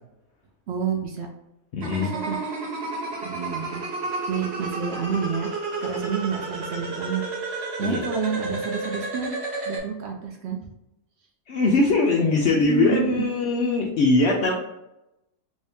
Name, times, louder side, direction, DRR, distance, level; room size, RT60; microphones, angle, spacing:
voice 1, 0.7-1.3 2.0-2.4 3.2-3.8 4.3-5.5 5.8-9.3 9.7-10.6 12.6-13.2, right 7 dB, 75° right, 1 dB, 0.6 m, -29 dB
voice 2, 1.7-2.1 7.8-8.0 11.5-14.6, left 3 dB, 80° left, -1 dB, 0.6 m, -21 dB
sound 1, 1.8-9.8, right 3 dB, 50° right, 1.0 m, -31 dB
2.9 x 2.7 x 3.4 m, 0.91 s
omnidirectional pair, 1.7 m